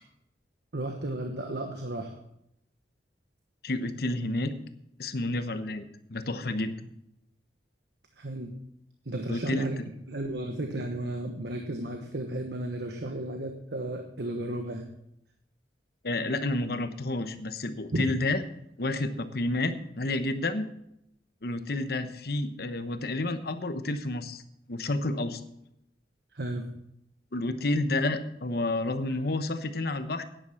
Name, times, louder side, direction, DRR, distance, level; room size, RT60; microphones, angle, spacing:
voice 1, 0.7-2.1 8.2-8.5 9.0-9.8 10.1-14.9 17.9-18.0 26.3-26.7, right 1 dB, 65° right, 4 dB, 1.2 m, -33 dB
voice 2, 3.6-4.5 5.0-6.7 9.3-9.9 16.0-18.4 18.8-20.7 21.4-24.4 24.7-25.4 27.3-30.2, left 2 dB, 60° left, 10 dB, 1.0 m, -30 dB
11.0 x 10.5 x 5.7 m, 0.78 s
head